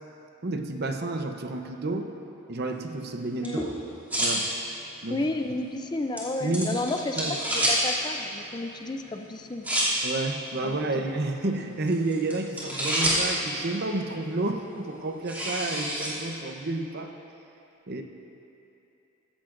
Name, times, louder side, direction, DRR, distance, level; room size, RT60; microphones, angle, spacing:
voice 1, 0.4-2.1 2.5-3.7 4.2-4.5 5.0-5.3 6.4-6.8 7.2-7.4 10.0-17.1 17.9-18.0, right 2 dB, 50° right, 4 dB, 0.8 m, -30 dB
sound 1, 2.6-16.7, equal, 10° right, 2.6 m, -32 dB
voice 2, 5.1-7.2 7.5-9.7 10.6-10.9, left 2 dB, 20° left, 5 dB, 0.4 m, -32 dB
16.0 x 14.5 x 2.6 m, 2.8 s
head